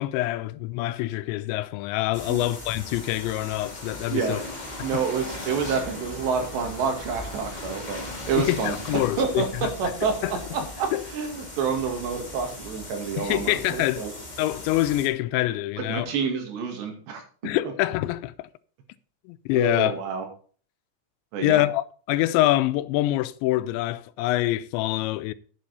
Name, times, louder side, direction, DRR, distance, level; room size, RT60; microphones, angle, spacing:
voice 1, 0.0-4.4 4.8-5.0 8.4-9.7 10.0-10.3 10.9-11.0 13.2-14.1 14.4-16.1 17.4-18.5 19.3-20.0 21.4-25.3, left 16 dB, 90° left, 2.9 m, -25 dB
sound 1, 2.1-15.1, left 1 dB, 55° left, 0.4 m, -38 dB
voice 2, 4.8-8.0 8.3-9.5 9.8-14.1 15.9-17.2 19.6-20.3 21.3-21.7, right 5 dB, 75° right, 4.2 m, -28 dB
10.5 x 8.8 x 4.2 m
omnidirectional pair, 5.1 m